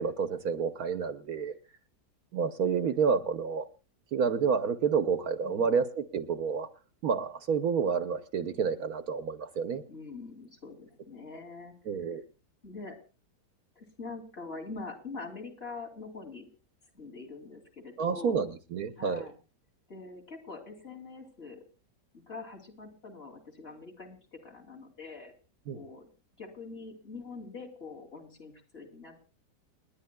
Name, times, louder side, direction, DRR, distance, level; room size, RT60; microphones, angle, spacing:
voice 1, 0.0-1.6 2.3-3.7 4.1-6.7 7.0-9.8 11.9-12.2 18.0-19.3 25.7-25.8, right 6 dB, 65° right, 10 dB, 1.2 m, -29 dB
voice 2, 5.4-5.7 9.9-11.7 12.0-12.2 12.6-13.0 13.7-16.5 16.9-18.4 19.0-19.3 19.9-21.6 22.3-25.3 25.7-26.1 26.4-29.3, left 3 dB, 35° left, 0 dB, 3.1 m, -44 dB
30.0 x 10.5 x 2.2 m, 0.33 s
omnidirectional pair, 1.8 m